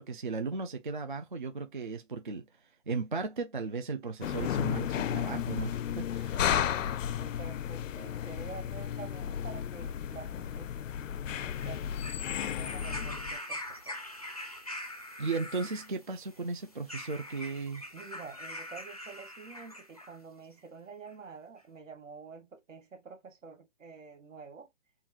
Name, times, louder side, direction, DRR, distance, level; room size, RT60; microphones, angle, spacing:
voice 1, 0.0-6.4 15.2-17.8, right 4 dB, 40° right, 0.4 m, -36 dB
sound 1, 4.2-13.4, left 9 dB, 80° left, 0.5 m, -33 dB
voice 2, 6.5-10.7 11.4-11.9 12.2-14.0 17.9-24.7, right 5 dB, 80° right, 2.2 m, -48 dB
sound 2, 11.5-20.2 21.1-21.2, left 1 dB, 30° left, 0.4 m, -43 dB
3.9 x 2.4 x 4.3 m
hypercardioid pair, 180°, 38 cm